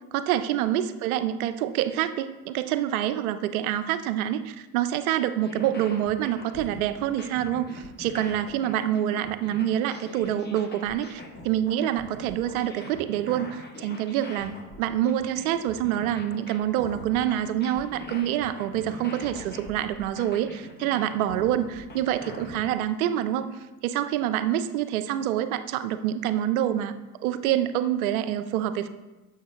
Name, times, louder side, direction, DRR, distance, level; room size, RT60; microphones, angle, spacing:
voice 1, 0.1-23.5 23.8-26.9 27.2-28.9, right 11 dB, 80° right, 11 dB, 0.5 m, -26 dB
sound 1, 5.4-22.7, left 2 dB, 25° left, 1.0 m, -43 dB
7.3 x 6.3 x 2.2 m, 1.1 s
hypercardioid pair, 75°, 42 cm